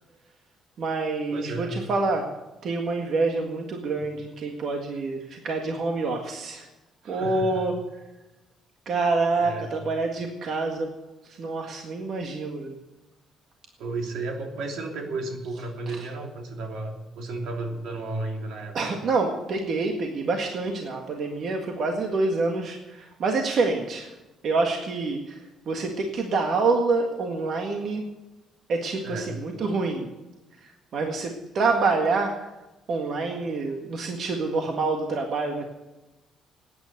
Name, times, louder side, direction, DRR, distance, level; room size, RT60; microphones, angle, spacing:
voice 1, 0.8-2.3 2.6-6.7 7.0-8.0 8.9-10.9 11.2-12.8 15.9-16.0 18.7-24.1 24.4-28.0 28.7-30.1 30.6-32.5 32.9-35.6, right 3 dB, 55° right, 2 dB, 1.8 m, -27 dB
voice 2, 1.3-1.8 7.0-7.7 9.4-9.8 13.8-18.8 29.0-29.4, right 2 dB, 80° right, 2 dB, 3.0 m, -33 dB
18.5 x 9.5 x 6.7 m, 1.0 s
cardioid pair, 135°, 0 cm